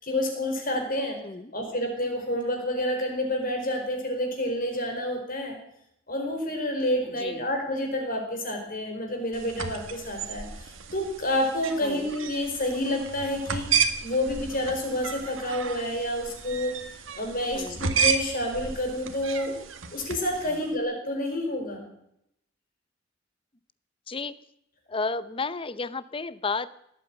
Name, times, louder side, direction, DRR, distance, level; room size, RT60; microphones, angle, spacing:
voice 1, 0.0-1.2 1.5-5.6 6.1-16.8 17.2-19.6 19.9-21.8, left 1 dB, 45° left, 3 dB, 4.7 m, -29 dB
sound 1, 9.3-20.7, right 6 dB, 85° right, 1.8 m, -32 dB
voice 2, 24.1-24.4 24.9-26.7, left 4 dB, 25° left, 16 dB, 0.7 m, -32 dB
18.5 x 8.8 x 8.8 m, 0.76 s
head